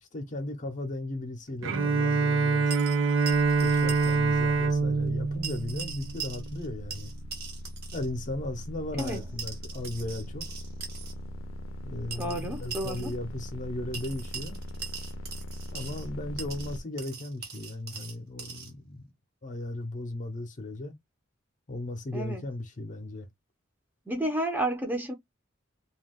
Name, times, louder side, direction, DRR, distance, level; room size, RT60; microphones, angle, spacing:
voice 1, 0.0-2.7 3.6-7.1 7.9-10.5 11.8-14.6 15.7-19.0 19.4-20.9 21.7-23.3, left 1 dB, 40° left, 0.6 m, -36 dB
Bowed string instrument, 1.6-6.6, right 4 dB, 80° right, 0.6 m, -25 dB
sound 1, 2.7-4.2 4.4-4.5 5.4-6.7 6.9-8.1 9.0-11.1 12.1-13.1 13.9-16.1 16.4-18.7, right 6 dB, 55° right, 1.1 m, -41 dB
sound 2, 3.3-16.8, equal, 80° left, 0.4 m, -41 dB
voice 2, 12.2-13.1 22.1-22.4 24.1-25.1, right 1 dB, 10° right, 0.6 m, -31 dB
2.3 x 2.2 x 3.4 m
head